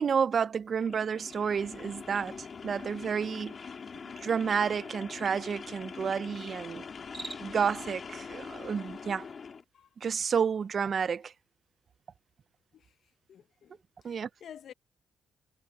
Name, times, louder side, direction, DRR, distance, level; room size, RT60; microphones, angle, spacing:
voice 1, 0.0-3.5 4.2-6.8 7.4-9.3 10.0-11.3 14.0-14.3, right 6 dB, 45° right, 0.5 m, -30 dB
sound 1, 0.8-9.6, left 5 dB, 45° left, 2.6 m, -43 dB
Cricket, 6.9-7.7, right 3 dB, 25° right, 1.7 m, -43 dB
voice 2, 13.3-13.8 14.0-14.7, left 9 dB, 65° left, 0.8 m, -50 dB
cardioid pair, 90°, 0 cm